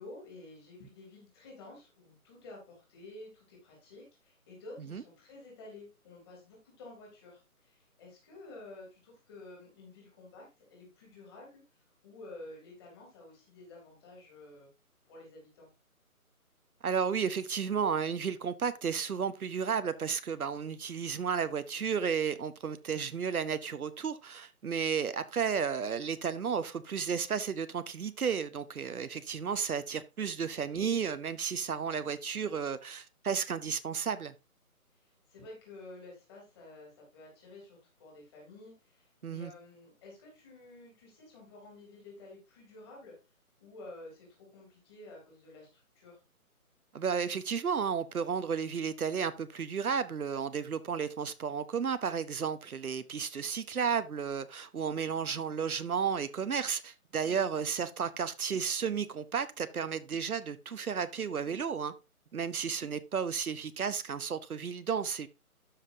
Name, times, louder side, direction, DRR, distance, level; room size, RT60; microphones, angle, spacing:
voice 1, 0.0-11.6 12.0-14.7 15.0-15.7 34.9-43.1 43.6-46.2, left 2 dB, 15° left, 3.1 m, -51 dB
voice 2, 16.8-34.3 39.2-39.5 46.9-61.9 62.3-65.3, right 6 dB, 75° right, 0.9 m, -33 dB
12.5 x 5.7 x 2.7 m
hypercardioid pair, 165°, 45 cm